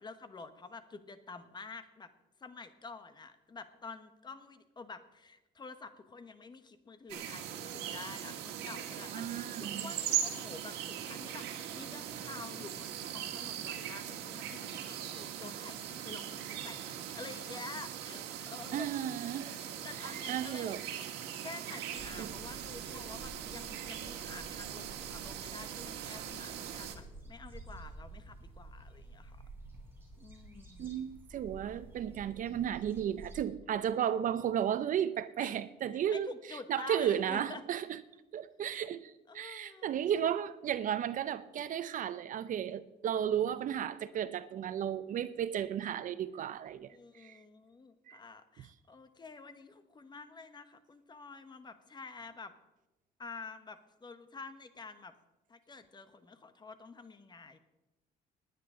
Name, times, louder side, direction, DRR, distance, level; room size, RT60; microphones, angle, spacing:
voice 1, 0.0-2.1 2.4-19.0 19.4-20.8 21.4-29.4 30.1-31.0 35.4-35.5 36.1-37.6 39.3-40.0 46.9-52.5 53.2-55.1 55.5-57.6, left 4 dB, 25° left, 1.1 m, -49 dB
sound 1, 7.1-27.0, right 10 dB, 90° right, 1.4 m, -40 dB
voice 2, 9.1-9.9 18.7-19.6 20.0-20.8 22.2-22.3 30.8-36.3 36.7-38.0 38.3-47.4 48.1-48.2, right 9 dB, 50° right, 0.5 m, -34 dB
sound 2, 21.9-33.4, right 2 dB, 15° right, 4.1 m, -51 dB
19.5 x 9.7 x 3.8 m
cardioid pair, 110°, 17 cm